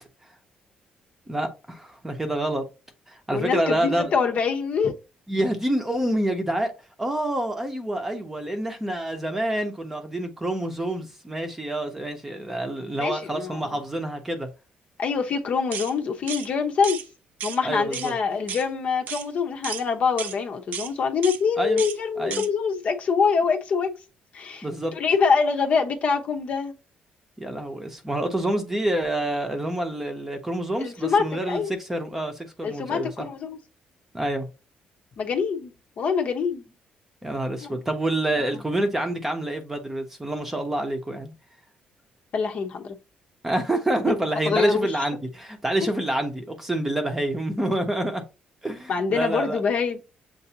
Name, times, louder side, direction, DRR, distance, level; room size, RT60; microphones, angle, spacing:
voice 1, 1.3-2.6 3.1-4.1 5.3-6.7 7.0-14.5 17.6-18.1 21.6-21.8 22.2-22.4 24.6-24.9 27.4-33.3 34.1-34.5 37.2-41.3 43.4-48.2 48.6-49.6, right 1 dB, 10° right, 0.8 m, -27 dB
voice 2, 3.3-4.9 13.0-13.8 15.0-17.0 17.4-23.9 24.3-26.7 30.8-31.7 32.6-33.6 35.2-36.6 37.6-37.8 42.3-42.9 44.0-44.1 44.4-45.1 48.9-50.0, left 5 dB, 50° left, 0.8 m, -25 dB
broušení nožů, 15.7-15.9 16.3-16.5 16.8-17.1 17.4-17.6 17.9-18.1 18.5-18.7 19.1-19.3 19.6-19.8 20.2-20.4 20.7-20.9 21.2-21.4 21.8-22.0 22.3-22.5, right 8 dB, 65° right, 0.5 m, -33 dB
6.8 x 2.6 x 2.8 m
cardioid pair, 155°, 3 cm